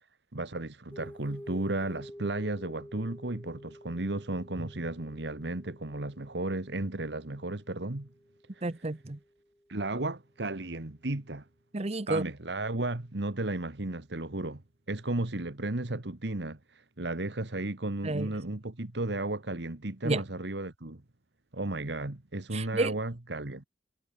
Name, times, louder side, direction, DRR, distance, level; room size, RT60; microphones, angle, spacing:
voice 1, 0.3-8.1 9.7-11.4 12.1-14.6 14.9-21.0 21.5-23.6, right 2 dB, 70° right, 1.7 m, -34 dB
sound 1, 0.9-9.8, equal, 10° left, 4.1 m, -51 dB
voice 2, 8.6-9.2 11.7-12.2 18.0-18.3 20.0-20.2 22.5-23.0, right 2 dB, 35° right, 0.9 m, -30 dB
head